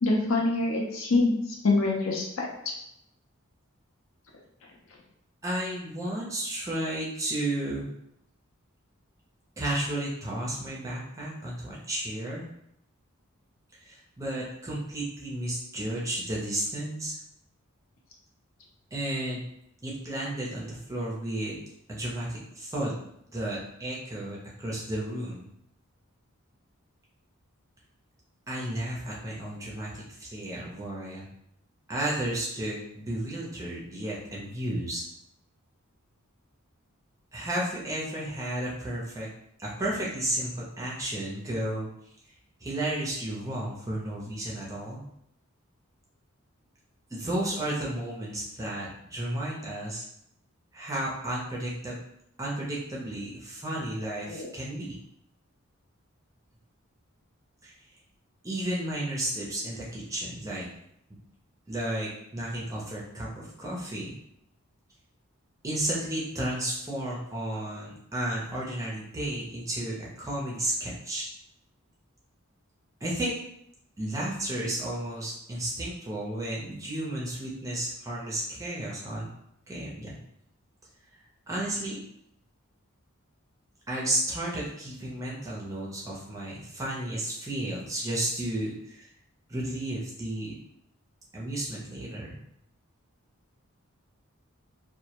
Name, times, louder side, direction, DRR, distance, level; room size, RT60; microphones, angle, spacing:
voice 1, 0.0-1.3 1.6-2.5 54.3-54.5, left 3 dB, 65° left, -1 dB, 0.5 m, -25 dB
voice 2, 5.4-7.9 9.6-12.5 13.8-17.1 18.9-19.4 19.8-21.6 21.9-23.0 23.3-25.5 28.5-31.3 31.9-35.0 37.3-39.3 39.6-41.9 42.6-45.0 47.1-50.0 50.7-52.0 52.4-55.0 57.6-57.7 58.4-60.7 61.7-64.1 65.6-71.3 73.0-73.4 74.0-79.3 79.7-80.1 81.5-82.0 83.9-89.1 89.5-90.5 91.3-92.4, right 1 dB, 15° right, -5 dB, 0.4 m, -33 dB
2.1 x 2.0 x 2.8 m, 0.77 s
head